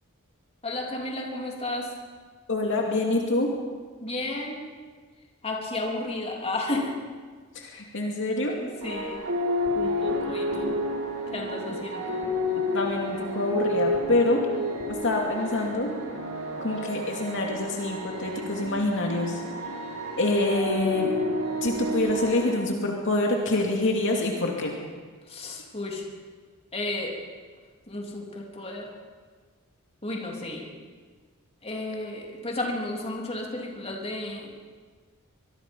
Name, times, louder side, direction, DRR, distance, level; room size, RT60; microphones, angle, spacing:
voice 1, 0.6-1.9 4.0-4.6 5.4-7.0 8.6-9.3 9.7-10.8 11.3-12.1 25.3-26.0 26.7-27.2 27.9-28.9 30.0-30.7 31.6-34.5, left 2 dB, 30° left, 0 dB, 3.5 m, -33 dB
voice 2, 2.5-3.5 7.5-8.6 12.5-14.4 15.0-15.9 16.6-19.4 20.2-21.1 21.6-24.7, left 2 dB, 60° left, 0 dB, 2.6 m, -26 dB
sound 1, 8.8-22.5, left 1 dB, 70° right, 5.6 m, -30 dB
25.0 x 22.0 x 5.6 m, 1.5 s
head